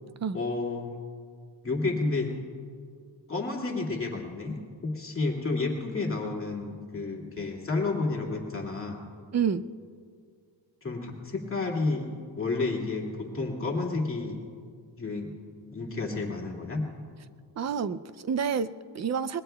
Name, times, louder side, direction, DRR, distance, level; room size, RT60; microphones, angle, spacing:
voice 1, 0.3-0.9 1.6-2.3 3.3-9.0 10.8-12.1 12.4-14.4 15.0-15.3 15.7-16.8, left 3 dB, 30° left, -2 dB, 2.4 m, -31 dB
voice 2, 9.3-9.7 17.6-19.4, right 7 dB, 40° right, 13 dB, 0.5 m, -29 dB
25.5 x 21.5 x 2.3 m, 2.1 s
wide cardioid pair, 135°, 45 cm